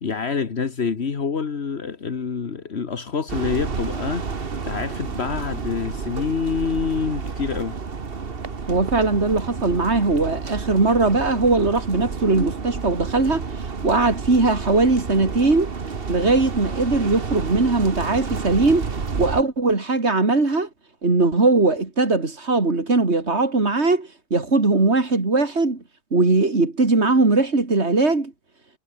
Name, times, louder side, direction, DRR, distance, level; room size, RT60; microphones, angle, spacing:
voice 1, 0.0-4.2 4.6-7.8, left 5 dB, 70° left, 1.8 m, -26 dB
sound 1, 3.3-19.4, right 5 dB, 55° right, 1.7 m, -30 dB
voice 2, 8.7-15.7 16.1-18.9 19.2-20.7 21.0-25.8 26.1-28.3, right 3 dB, 75° right, 3.6 m, -20 dB
omnidirectional pair, 1.1 m